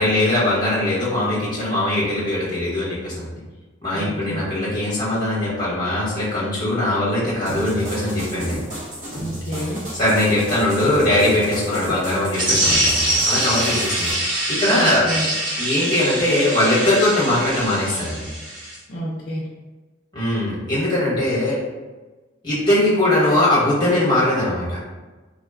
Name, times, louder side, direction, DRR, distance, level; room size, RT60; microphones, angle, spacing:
voice 1, 0.0-3.4 3.8-8.7 9.9-15.1 15.6-18.3 20.1-21.5 22.4-24.8, left 1 dB, 20° left, -8 dB, 0.9 m, -21 dB
voice 2, 3.9-4.5 9.2-9.8 14.7-15.3 18.9-19.4, equal, 55° left, -6 dB, 0.5 m, -29 dB
sound 1, 7.5-14.1, right 1 dB, 40° right, 0.8 m, -33 dB
sound 2, 12.3-18.8, right 1 dB, 70° right, 1.1 m, -23 dB
3.5 x 2.1 x 2.3 m, 1.2 s
head